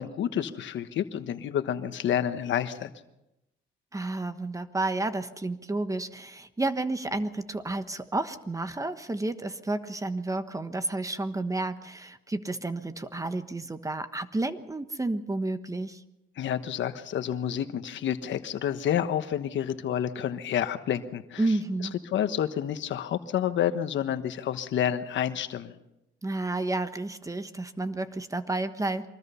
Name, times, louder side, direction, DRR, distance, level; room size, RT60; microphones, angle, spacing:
voice 1, 0.0-2.9 16.4-21.4 22.1-25.7, left 10 dB, 70° left, 10 dB, 1.3 m, -29 dB
voice 2, 3.9-16.0 21.4-21.9 26.2-29.1, right 2 dB, 15° right, 10 dB, 1.3 m, -31 dB
24.5 x 19.5 x 5.7 m, 0.90 s
cardioid pair, 90°, 20 cm